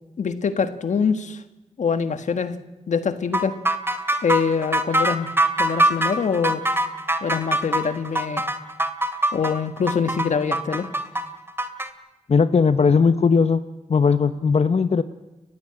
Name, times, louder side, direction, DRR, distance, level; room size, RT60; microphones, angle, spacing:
voice 1, 0.2-1.4 1.8-2.5 2.9-3.5 4.2-5.3 5.6-6.6 7.2-8.4 9.3-10.9, left 6 dB, 85° left, 10 dB, 1.6 m, -24 dB
sound 1, 3.3-11.9, right 1 dB, 20° right, 2.5 m, -23 dB
voice 2, 12.3-13.6 13.9-15.0, left 5 dB, 60° left, 11 dB, 0.9 m, -18 dB
29.5 x 16.0 x 8.9 m, 1.1 s
cardioid pair, 50°, 12 cm